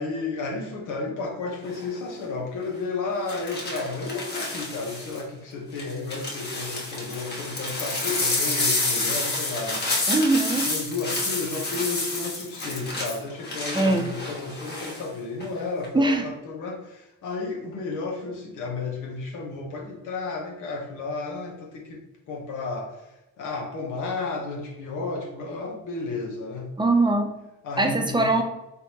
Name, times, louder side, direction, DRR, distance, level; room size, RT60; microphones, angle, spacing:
voice 1, 0.0-9.9 10.4-22.0 22.3-26.7 27.6-28.3, left 3 dB, 90° left, 1 dB, 1.1 m, -32 dB
sound 1, 1.6-2.0 3.3-5.2 5.8-15.0 15.4-15.9, left 2 dB, 35° left, 1.2 m, -29 dB
voice 2, 10.1-10.7 13.7-14.1 15.9-16.3 26.8-27.3 27.8-28.4, right 2 dB, 15° right, 3 dB, 0.6 m, -21 dB
3.7 x 3.5 x 2.9 m, 0.94 s
cardioid pair, 90°, 30 cm